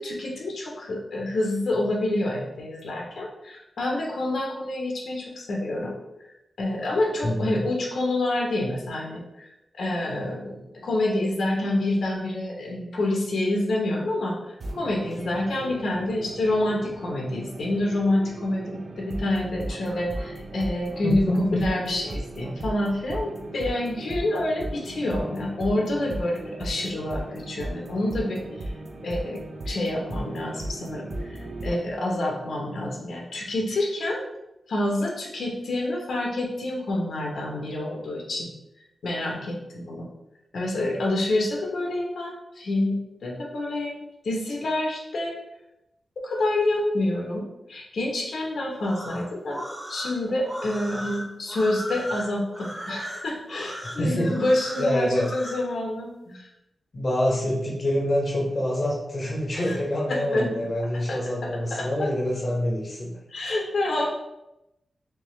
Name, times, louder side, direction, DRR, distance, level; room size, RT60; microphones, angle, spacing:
voice 1, 0.0-6.0 6.6-14.4 14.7-28.4 29.0-31.3 31.6-34.2 34.7-38.5 39.0-40.1 40.5-45.3 46.2-49.6 49.9-56.5 59.5-59.8 60.1-60.5 60.8-62.1 63.3-64.1, left 1 dB, 75° left, -1 dB, 0.9 m, -27 dB
voice 2, 7.2-7.7 21.0-21.7 54.0-54.3 54.8-55.3 56.3-56.4 56.9-63.1, equal, 35° left, -2 dB, 0.7 m, -26 dB
sound 1, 14.6-31.8, right 1 dB, 55° right, 0.4 m, -36 dB
sound 2, 48.7-55.7, equal, 15° right, 0.8 m, -37 dB
3.5 x 3.2 x 3.1 m, 0.90 s
wide cardioid pair, 130°, 0 cm